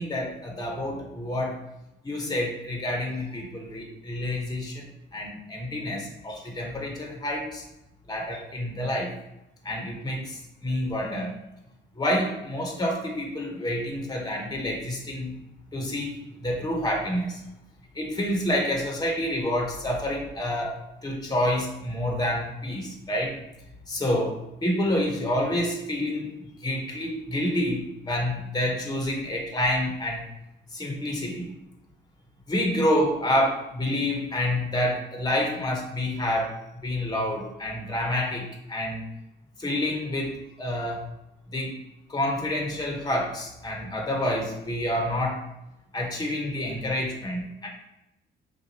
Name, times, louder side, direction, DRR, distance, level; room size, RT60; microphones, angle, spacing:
voice 1, 0.0-1.6 2.0-7.6 8.1-9.2 9.6-11.3 12.0-15.3 15.7-17.4 17.9-20.7 21.0-23.4 23.9-30.3 30.7-31.5 32.5-39.0 39.6-41.1 41.5-41.8 42.1-45.4 45.9-47.7, left 1 dB, 20° left, 0 dB, 1.1 m, -28 dB
5.7 x 2.5 x 2.8 m, 0.90 s
cardioid pair, 90°, 20 cm